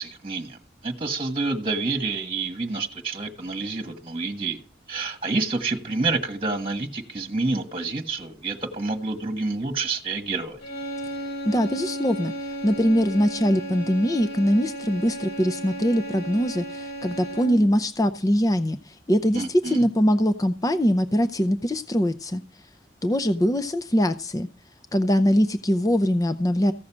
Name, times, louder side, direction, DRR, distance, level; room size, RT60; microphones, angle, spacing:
voice 1, 0.0-4.6 4.9-10.6 19.3-19.8, right 3 dB, 30° right, 1.5 m, -28 dB
sound 1, 10.6-17.8, right 1 dB, 65° left, 5.6 m, -34 dB
voice 2, 11.4-22.4 23.0-24.5 24.9-26.7, equal, 20° left, 0.5 m, -22 dB
15.0 x 6.4 x 7.3 m
head